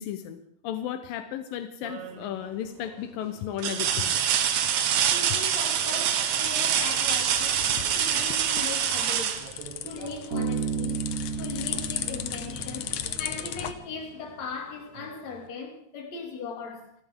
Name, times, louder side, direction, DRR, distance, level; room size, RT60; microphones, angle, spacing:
voice 1, 0.0-4.2, left 10 dB, 85° left, 2.6 m, -34 dB
sound 1, 1.8-2.3 2.9-3.0 3.6-10.3 12.1-12.2 12.7-13.7 15.0-15.1, right 9 dB, 65° right, 2.3 m, -26 dB
voice 2, 5.1-9.5 9.8-11.1 11.4-16.9, left 5 dB, 55° left, 3.6 m, -39 dB
sound 2, 7.0-13.7, left 11 dB, 70° left, 1.8 m, -36 dB
Bass guitar, 10.3-13.8, right 6 dB, 25° right, 3.2 m, -33 dB
29.0 x 13.0 x 3.7 m
omnidirectional pair, 3.9 m